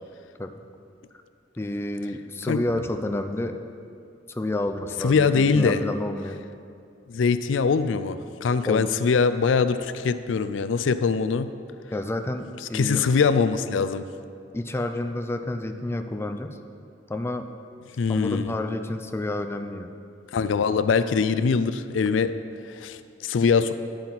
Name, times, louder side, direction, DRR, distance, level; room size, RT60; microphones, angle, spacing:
voice 1, 1.6-3.6 4.3-6.4 8.6-8.9 11.9-13.1 14.5-16.6 17.1-17.5 18.1-19.9, left 1 dB, 15° left, 7 dB, 0.4 m, -29 dB
voice 2, 5.0-5.8 7.1-11.5 12.7-14.0 18.0-18.5 20.3-22.3 22.7-23.7, left 5 dB, 90° left, 12 dB, 0.4 m, -22 dB
10.5 x 8.5 x 4.0 m, 2.4 s
head